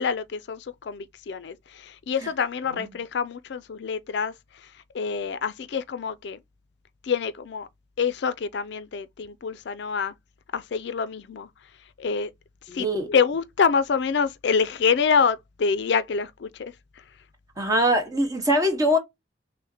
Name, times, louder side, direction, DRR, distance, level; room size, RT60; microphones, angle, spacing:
voice 1, 0.0-4.3 4.9-6.4 7.0-7.7 8.0-10.1 10.5-11.5 12.0-12.3 12.7-16.7, left 6 dB, 65° left, 0.4 m, -26 dB
voice 2, 12.7-13.1 17.6-19.0, equal, 20° right, 1.0 m, -23 dB
6.2 x 2.1 x 2.7 m
head